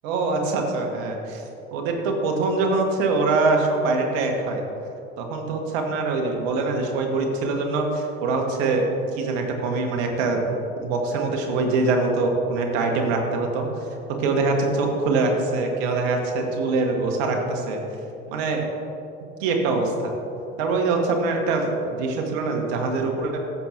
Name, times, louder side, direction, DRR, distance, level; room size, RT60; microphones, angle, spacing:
voice 1, 0.0-1.4 1.7-4.6 5.2-8.8 9.1-10.5 10.8-13.7 14.2-17.8 18.3-18.6 19.4-20.1 20.6-23.4, right 3 dB, 55° right, 2 dB, 1.4 m, -23 dB
14.0 x 7.0 x 2.9 m, 2.7 s
figure-of-eight pair, 70°, 38 cm